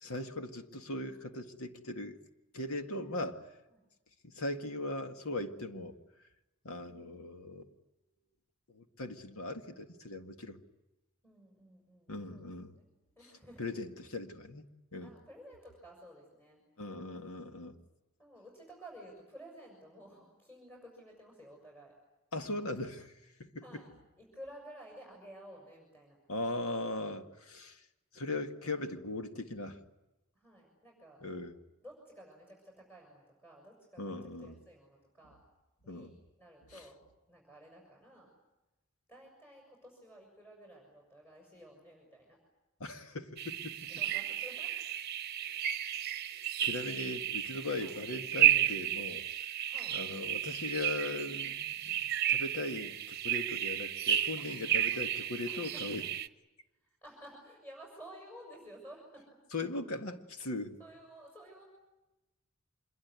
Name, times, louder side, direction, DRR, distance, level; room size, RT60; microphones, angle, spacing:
voice 1, 0.0-2.2 2.5-3.4 4.2-6.0 6.6-7.7 8.7-10.6 12.1-12.7 13.6-15.1 16.8-17.8 22.3-23.1 23.4-23.8 26.3-27.8 28.1-29.8 31.2-31.5 34.0-34.6 35.9-36.1 36.7-36.8 42.8-43.9 45.5-45.6 46.3-49.2 49.9-52.0 52.3-56.0 59.5-60.8, left 2 dB, 90° left, 7 dB, 2.0 m, -39 dB
voice 2, 6.9-7.3 11.2-13.6 15.0-16.6 18.2-21.9 23.6-23.9 24.2-26.2 30.3-31.2 31.8-35.4 35.8-36.9 37.3-38.3 39.1-42.4 43.7-44.8 46.4-46.7 47.8-48.0 49.6-50.0 54.4-55.1 55.4-56.0 56.8-59.3 60.8-61.6, right 1 dB, 10° left, -1 dB, 6.7 m, -54 dB
sound 1, 43.4-56.3, right 11 dB, 50° right, 0.9 m, -33 dB
26.0 x 22.5 x 9.6 m, 1.0 s
head